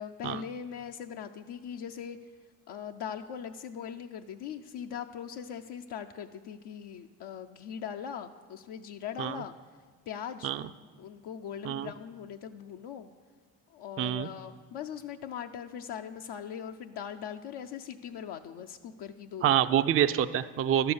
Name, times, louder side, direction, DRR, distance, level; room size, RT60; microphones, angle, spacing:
voice 1, 0.0-2.2 2.7-9.5 10.1-10.5 11.0-13.1 13.7-19.4, left 8 dB, 75° left, 5 dB, 0.6 m, -40 dB
voice 2, 14.0-14.3 19.4-20.9, right 10 dB, 35° right, 10 dB, 0.4 m, -26 dB
11.5 x 6.8 x 7.0 m, 1.5 s
cardioid pair, 75°, 40 cm